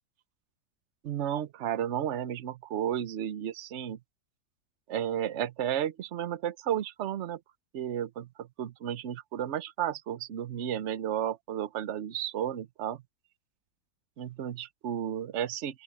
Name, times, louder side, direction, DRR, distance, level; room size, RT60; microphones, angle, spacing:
voice 1, 1.0-4.0 4.9-7.4 7.7-13.0 14.2-15.8, right 10 dB, 50° right, 1.0 m, -33 dB
open air
omnidirectional pair, 1.8 m